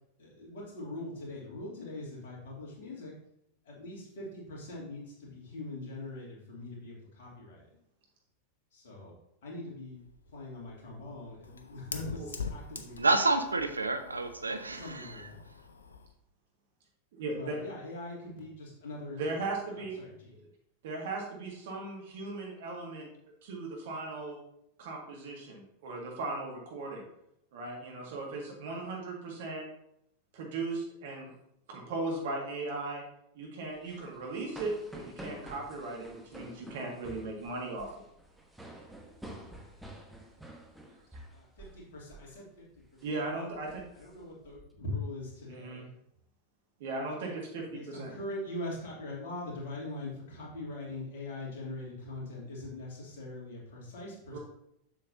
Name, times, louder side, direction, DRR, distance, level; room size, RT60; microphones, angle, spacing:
voice 1, 0.2-3.1 3.7-7.6 8.7-9.1 9.4-10.0 10.3-13.0 14.7-15.4 17.4-19.2 20.0-20.1 41.3-42.6 42.9-43.0 43.9-45.9 47.7-54.4, left 2 dB, 55° left, -4 dB, 2.6 m, -42 dB
Fire, 9.9-16.1, left 5 dB, 75° left, 0.6 m, -44 dB
voice 2, 13.0-15.3, right 3 dB, 80° right, 9 dB, 0.5 m, -29 dB
voice 3, 17.1-17.6 19.2-20.0 20.8-23.1 23.4-24.4 24.8-27.1 27.5-29.6 30.3-31.3 31.7-33.0 33.3-38.0 43.0-43.8 45.5-45.9 46.8-48.1 54.3-54.4, right 3 dB, 55° right, 0 dB, 1.8 m, -37 dB
sound 1, 33.8-41.8 42.1-42.4 42.8-43.1 43.5-44.7, right 1 dB, 5° right, 1.0 m, -49 dB
7.3 x 6.6 x 2.7 m, 0.78 s
figure-of-eight pair, 90°, 0 cm